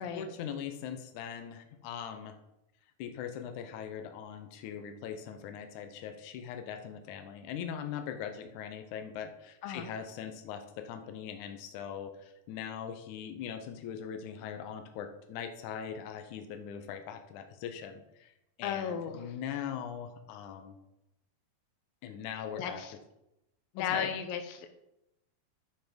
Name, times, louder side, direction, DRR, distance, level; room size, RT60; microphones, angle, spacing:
voice 1, 0.0-2.3 3.0-18.3 18.6-20.8 22.0-22.8 23.8-24.1, left 8 dB, 90° left, 6 dB, 1.7 m, -41 dB
voice 2, 9.6-9.9 18.6-19.3 22.6-22.9 23.7-24.7, left 8 dB, 75° left, 7 dB, 2.4 m, -35 dB
10.5 x 5.9 x 5.1 m, 0.88 s
omnidirectional pair, 4.6 m